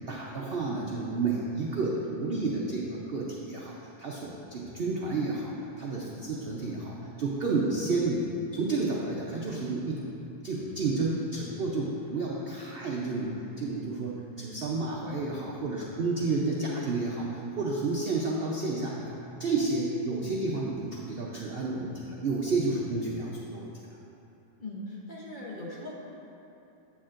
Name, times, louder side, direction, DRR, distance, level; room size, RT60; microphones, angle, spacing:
voice 1, 0.1-10.1 10.4-19.1 19.4-23.7, right 3 dB, 85° right, -3 dB, 0.5 m, -31 dB
voice 2, 24.6-25.9, left 1 dB, 35° left, -6 dB, 0.9 m, -39 dB
8.6 x 8.3 x 2.5 m, 2.9 s
omnidirectional pair, 1.9 m